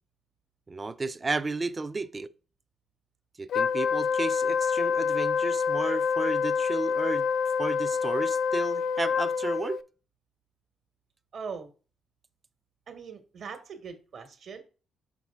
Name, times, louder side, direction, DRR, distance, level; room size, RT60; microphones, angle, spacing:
voice 1, 0.7-2.3 3.4-7.3 7.6-9.8, right 3 dB, 25° right, 0.4 m, -33 dB
Wind instrument woodwind instrument, 3.5-9.8, left 6 dB, 65° left, 0.4 m, -27 dB
voice 2, 11.3-11.7 12.9-14.6, right 5 dB, 60° right, 1.3 m, -41 dB
5.9 x 4.8 x 3.6 m
cardioid pair, 90°, 0 cm